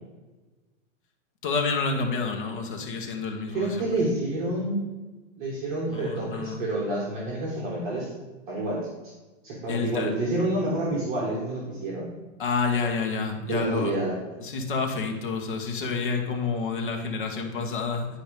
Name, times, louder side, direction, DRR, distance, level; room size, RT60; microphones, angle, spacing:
voice 1, 1.4-3.9 5.9-6.6 9.7-10.1 12.4-14.0 14.4-18.1, left 4 dB, 40° left, 3 dB, 1.5 m, -29 dB
voice 2, 3.5-4.8 5.4-8.1 8.5-8.8 9.4-12.1 13.5-14.2, right 1 dB, 40° right, -5 dB, 2.5 m, -28 dB
10.5 x 5.1 x 5.2 m, 1.2 s
hypercardioid pair, 175°, 38 cm